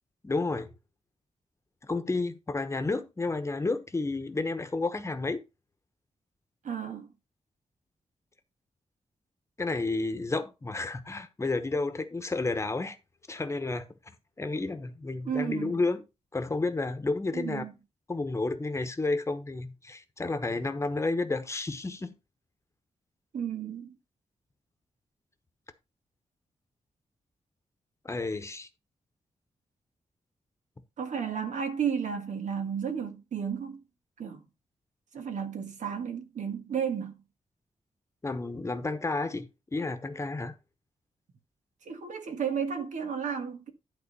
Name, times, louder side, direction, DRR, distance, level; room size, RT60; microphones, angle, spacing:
voice 1, 0.2-0.7 1.8-5.4 9.6-13.0 13.3-13.9 14.4-16.0 16.3-17.6 18.1-22.1 28.0-28.7 38.2-40.5, left 3 dB, 20° left, 1.0 m, -31 dB
voice 2, 6.6-7.1 15.2-15.8 17.3-17.7 23.3-24.0 31.0-33.8 34.2-34.4 35.1-37.2 41.8-43.7, right 7 dB, 85° right, 1.6 m, -33 dB
11.5 x 3.8 x 5.4 m
wide cardioid pair, 140°, 12 cm